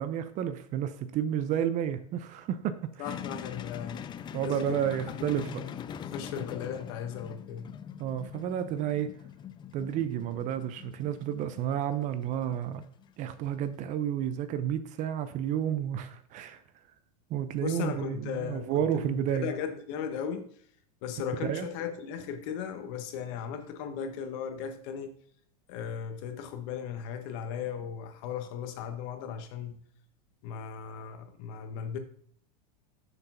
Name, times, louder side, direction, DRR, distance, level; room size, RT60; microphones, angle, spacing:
voice 1, 0.0-3.1 4.3-5.6 8.0-9.1 9.7-12.8 13.2-16.6 17.3-19.5 21.5-21.7, right 10 dB, 40° right, 0.7 m, -31 dB
voice 2, 3.0-4.1 4.4-4.8 5.2-5.8 6.1-7.7 17.6-20.5 21.0-25.1 25.7-29.8 30.4-32.0, left 7 dB, 55° left, 1.4 m, -37 dB
sound 1, 3.0-13.8, left 9 dB, 25° left, 0.4 m, -43 dB
6.8 x 4.5 x 5.7 m
supercardioid pair, 120°, 19 cm